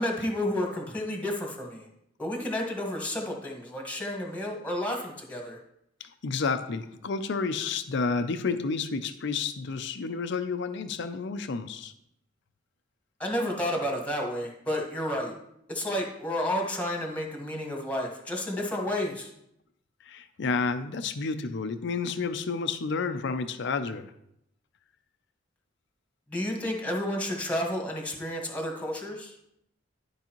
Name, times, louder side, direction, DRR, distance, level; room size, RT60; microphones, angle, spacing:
voice 1, 0.0-1.9 2.2-5.6 13.2-15.3 15.7-19.3 26.3-29.3, left 1 dB, 10° left, 1 dB, 1.4 m, -31 dB
voice 2, 6.0-11.9 20.0-24.1, left 4 dB, 65° left, 10 dB, 0.5 m, -30 dB
12.0 x 4.7 x 3.0 m, 0.77 s
head